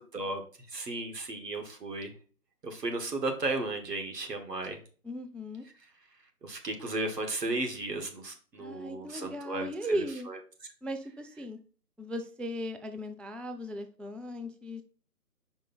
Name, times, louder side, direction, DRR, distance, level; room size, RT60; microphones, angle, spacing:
voice 1, 0.7-2.1 2.6-4.8 6.4-10.4, right 2 dB, 85° right, 4 dB, 1.9 m, -35 dB
voice 2, 5.0-5.6 8.6-10.3 10.8-11.6 12.0-14.8, equal, 5° left, 8 dB, 0.3 m, -37 dB
5.1 x 4.6 x 4.1 m, 0.40 s
hypercardioid pair, 180°, 47 cm